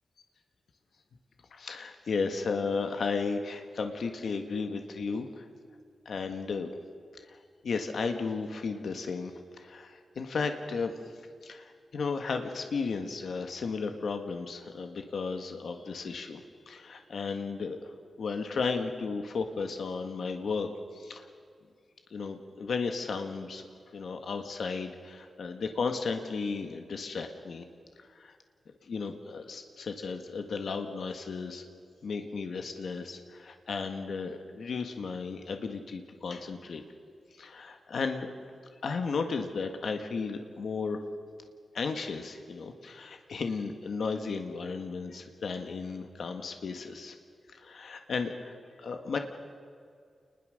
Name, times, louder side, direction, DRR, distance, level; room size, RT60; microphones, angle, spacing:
voice 1, 1.5-5.5 6.0-6.7 7.2-7.4 7.6-9.3 9.6-10.9 11.4-21.3 22.1-23.7 23.9-27.6 28.0-28.3 28.8-31.6 32.0-36.8 37.3-38.3 38.8-41.0 41.7-47.1 47.5-49.2, left 4 dB, 70° left, 5 dB, 1.6 m, -34 dB
29.0 x 20.5 x 6.6 m, 2.1 s
wide cardioid pair, 130°, 0 cm